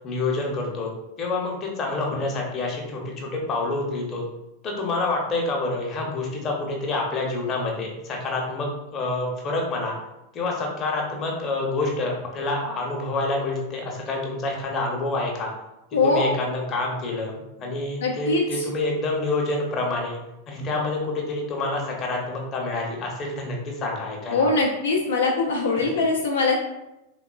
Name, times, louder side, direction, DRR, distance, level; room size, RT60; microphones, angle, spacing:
voice 1, 0.0-0.9 1.2-4.2 4.6-9.9 10.3-15.5 15.9-17.3 17.6-20.2 20.5-24.5 25.8-26.0, left 2 dB, 30° left, 0 dB, 0.7 m, -27 dB
voice 2, 15.9-16.3 18.0-18.7 24.3-26.5, left 3 dB, 65° left, 0 dB, 0.3 m, -22 dB
3.5 x 2.2 x 2.3 m, 0.93 s
figure-of-eight pair, 90°, 0 cm